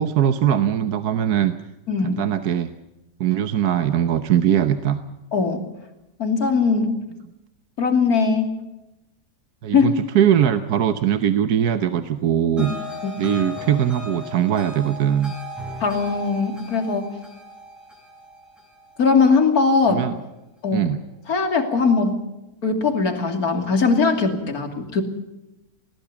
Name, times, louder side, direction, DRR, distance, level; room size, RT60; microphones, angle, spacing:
voice 1, 0.0-1.5 2.0-2.7 3.2-5.0 9.6-12.7 13.2-15.3 19.9-20.1 20.7-21.0, right 10 dB, 70° right, 10 dB, 1.4 m, -21 dB
voice 2, 1.9-2.2 5.3-5.6 6.2-7.0 7.8-8.6 9.7-9.9 13.0-13.1 15.8-17.1 19.0-20.1 20.6-20.9 21.3-22.2 22.6-25.0, left 4 dB, 65° left, 6 dB, 3.3 m, -20 dB
sound 1, 12.6-19.7, left 1 dB, ahead, 7.5 m, -37 dB
21.0 x 18.5 x 7.0 m, 0.94 s
omnidirectional pair, 1.7 m